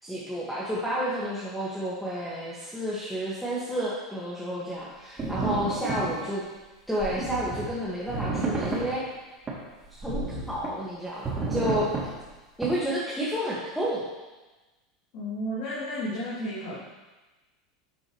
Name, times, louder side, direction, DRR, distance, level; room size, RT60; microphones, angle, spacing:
voice 1, 0.0-6.4 6.9-9.0 10.0-11.9 12.6-14.1, equal, ahead, -8 dB, 2.0 m, -30 dB
sound 1, 5.2-6.2 7.0-7.7 8.1-8.9 9.5-9.6 10.0-10.7 11.2-12.1 12.6-12.7, right 3 dB, 25° right, 3.0 m, -30 dB
voice 2, 5.5-6.2 15.1-16.8, equal, 55° left, -9 dB, 3.1 m, -33 dB
12.0 x 6.3 x 3.3 m, 1.2 s
hypercardioid pair, 95°, 3 cm